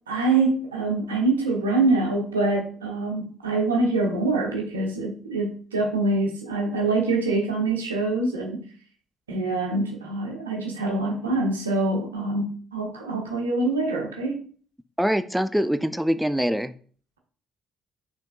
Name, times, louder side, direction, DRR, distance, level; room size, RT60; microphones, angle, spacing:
voice 1, 0.1-8.6 9.3-14.3, right 3 dB, 90° right, 0 dB, 0.9 m, -25 dB
voice 2, 15.0-16.7, equal, 5° right, 11 dB, 0.4 m, -24 dB
5.7 x 3.5 x 2.4 m, 0.43 s
hypercardioid pair, 45°, 0 cm